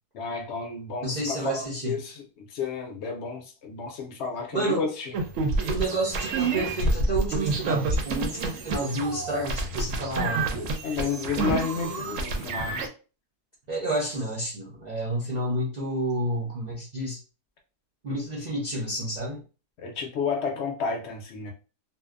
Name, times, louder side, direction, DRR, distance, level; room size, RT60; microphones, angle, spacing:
voice 1, 0.1-5.1 10.8-12.9 19.8-21.5, left 5 dB, 65° left, 0.7 m, -31 dB
voice 2, 1.0-2.0 4.5-4.8 5.7-10.7 13.7-17.2 18.0-19.4, right 1 dB, 90° right, 0.3 m, -30 dB
sound 1, 5.1-12.9, right 3 dB, 70° right, 0.8 m, -28 dB
2.6 x 2.1 x 2.3 m
omnidirectional pair, 1.7 m